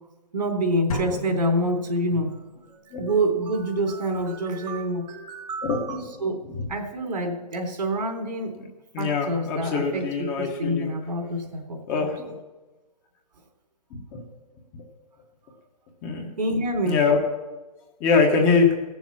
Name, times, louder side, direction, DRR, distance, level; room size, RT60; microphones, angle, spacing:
voice 1, 0.3-6.4 6.7-8.5 9.0-12.1 16.4-17.0, right 1 dB, 85° right, 2 dB, 3.6 m, -27 dB
sound 1, 0.9-2.6, left 2 dB, 60° left, 1.7 m, -35 dB
voice 2, 5.6-6.2 6.5-6.7 8.6-8.7 8.9-10.9 11.9-12.3 13.9-14.2 14.7-14.8 16.0-16.3 16.8-17.2 18.0-18.7, left 4 dB, 20° left, 2 dB, 1.4 m, -23 dB
16.0 x 7.2 x 7.4 m, 1.1 s
hypercardioid pair, 165°, 21 cm